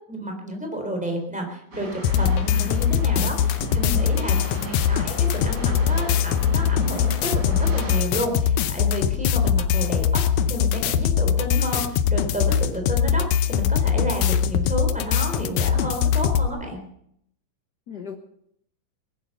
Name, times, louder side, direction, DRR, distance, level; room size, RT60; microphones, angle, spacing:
voice 1, 0.1-16.8, right 1 dB, ahead, 2 dB, 3.4 m, -31 dB
sound 1, 1.7-8.0, right 1 dB, 35° right, 4.2 m, -37 dB
sound 2, 2.0-16.5, left 8 dB, 80° left, 2.2 m, -22 dB
voice 2, 2.6-2.7 3.8-4.1 9.1-9.2 17.9-18.2, left 6 dB, 65° left, 4 dB, 1.0 m, -35 dB
19.5 x 11.0 x 6.7 m, 0.72 s
omnidirectional pair, 3.5 m